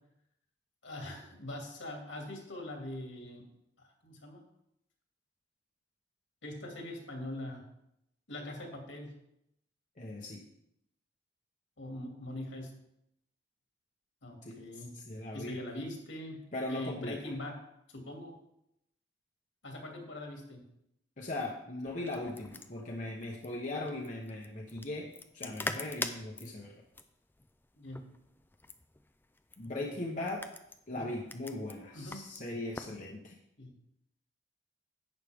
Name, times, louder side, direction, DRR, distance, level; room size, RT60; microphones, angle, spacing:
voice 1, 0.8-3.5 3.8-4.4 6.4-7.6 8.3-9.1 11.8-12.7 14.2-14.9 15.3-17.6 17.9-18.3 19.6-20.6 25.4-25.6 27.8-28.1 29.8-29.9 30.9-31.1 31.9-32.3 33.6-33.7, left 1 dB, 75° left, 1 dB, 2.6 m, -42 dB
voice 2, 10.0-10.4 14.4-15.6 16.5-17.2 21.2-25.1 25.3-26.7 29.6-30.5 30.9-33.3, left 2 dB, 40° left, -2 dB, 1.0 m, -39 dB
sound 1, 21.9-33.0, left 2 dB, 10° left, 0.4 m, -45 dB
11.0 x 8.3 x 3.6 m, 0.80 s
head